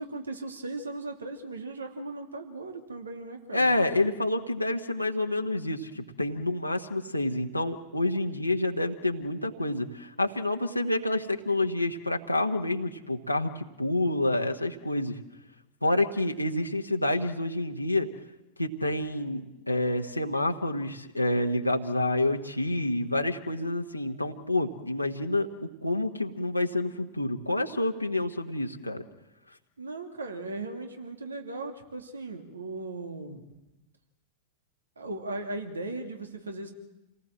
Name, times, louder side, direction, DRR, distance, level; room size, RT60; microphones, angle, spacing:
voice 1, 0.0-3.7 29.8-33.5 35.0-36.7, right 2 dB, 75° right, 4 dB, 2.6 m, -37 dB
voice 2, 3.5-15.2 15.8-18.1 18.6-29.0, left 2 dB, 90° left, 2 dB, 1.4 m, -28 dB
28.5 x 18.5 x 7.7 m, 0.97 s
figure-of-eight pair, 90°, 0 cm